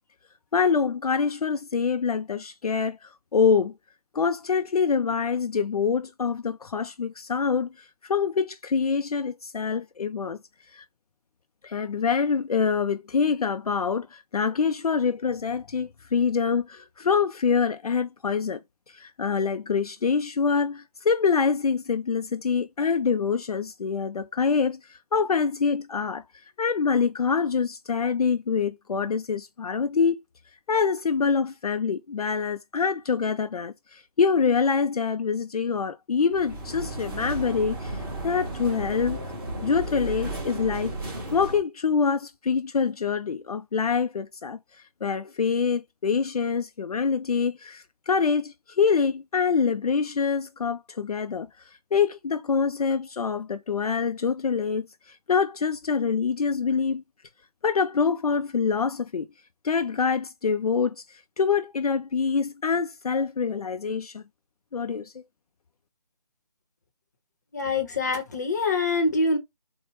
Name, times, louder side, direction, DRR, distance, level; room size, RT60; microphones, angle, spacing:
voice 1, 0.5-3.7 4.1-10.4 10.7-10.8 11.6-18.6 18.9-26.2 26.6-30.2 30.7-39.2 39.6-40.9 41.3-44.6 45.0-51.5 51.9-57.0 57.6-59.3 59.6-64.2 64.7-65.2, left 5 dB, 65° left, 0.5 m, -25 dB
sound 1, 36.3-41.6, right 1 dB, 35° right, 1.6 m, -34 dB
voice 2, 67.5-69.4, left 3 dB, 25° left, 0.8 m, -25 dB
4.3 x 2.2 x 3.2 m
figure-of-eight pair, 165°, 21 cm